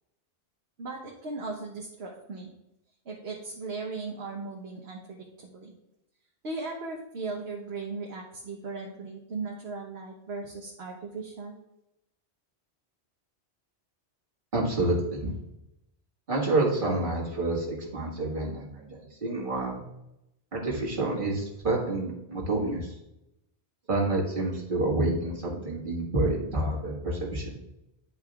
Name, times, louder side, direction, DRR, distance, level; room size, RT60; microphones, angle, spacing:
voice 1, 0.8-2.5 3.0-5.7 6.4-11.6, right 3 dB, 70° right, -1 dB, 1.2 m, -37 dB
voice 2, 14.5-15.3 16.3-19.8 20.5-23.0 23.9-27.6, right 2 dB, 50° right, -3 dB, 1.9 m, -28 dB
10.5 x 5.4 x 2.4 m, 0.85 s
omnidirectional pair, 1.1 m